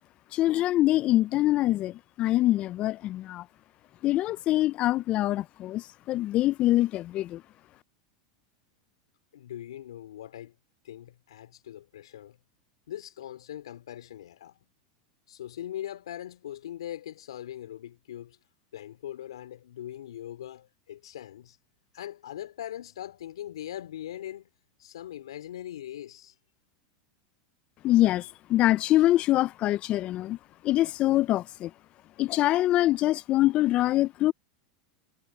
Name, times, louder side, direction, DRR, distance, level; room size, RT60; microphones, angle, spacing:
voice 1, 0.3-3.4 4.0-7.4 27.8-30.4 30.6-31.7 32.2-34.3, left 15 dB, 40° left, 0.6 m, -24 dB
voice 2, 9.3-10.5 10.8-12.4 12.9-14.6 15.3-18.4 18.7-21.6 21.9-24.5 24.8-26.4, left 11 dB, 80° left, 4.0 m, -41 dB
hypercardioid pair, 100°, 3 cm